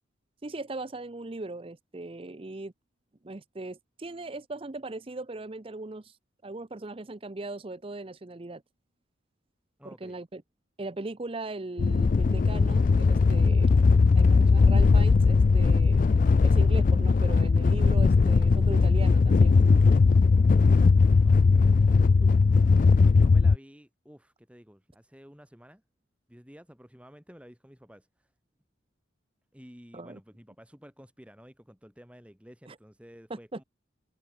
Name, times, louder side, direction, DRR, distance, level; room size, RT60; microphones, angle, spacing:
voice 1, 0.4-2.7 3.2-6.1 6.4-8.6 9.8-10.4 10.8-13.8 14.2-16.0 16.4-19.6 22.2-22.3 29.9-30.2 32.7-32.8 33.3-33.6, right 2 dB, 25° right, 0.6 m, -39 dB
voice 2, 9.8-10.2 20.9-21.4 22.9-25.8 26.3-28.1 29.5-33.6, equal, 5° right, 7.0 m, -52 dB
sound 1, 11.8-23.6, left 4 dB, 40° left, 0.3 m, -19 dB
head